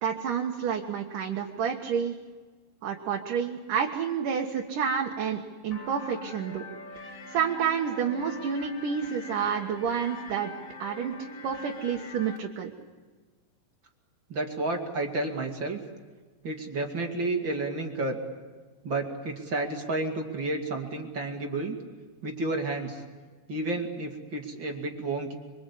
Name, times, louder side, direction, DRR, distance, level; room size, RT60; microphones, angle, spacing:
voice 1, 0.0-2.2 2.8-6.7 7.0-10.5 10.8-12.7, right 7 dB, 70° right, 0 dB, 3.0 m, -29 dB
sound 1, 5.7-12.4, left 3 dB, 60° left, 0.8 m, -43 dB
voice 2, 14.3-15.8 16.4-18.2 18.8-21.8 22.2-23.0 23.5-25.3, right 2 dB, 35° right, 3 dB, 2.6 m, -31 dB
27.5 x 24.0 x 8.4 m, 1.4 s
omnidirectional pair, 4.1 m